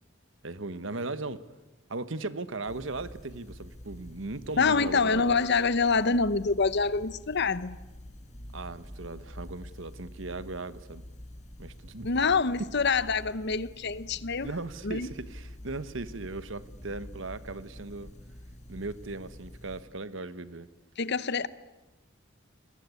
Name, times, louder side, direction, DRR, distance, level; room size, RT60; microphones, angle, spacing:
voice 1, 0.4-1.4 1.9-5.4 8.5-11.0 11.6-12.1 14.4-18.1 18.7-20.7, right 3 dB, 70° right, 14 dB, 1.3 m, -38 dB
sound 1, 2.7-19.8, left 1 dB, 35° left, 2.0 m, -47 dB
voice 2, 4.6-7.8 12.0-14.5 14.8-15.1 21.0-21.5, left 4 dB, 60° left, 16 dB, 1.0 m, -26 dB
29.0 x 22.0 x 8.5 m, 1.1 s
head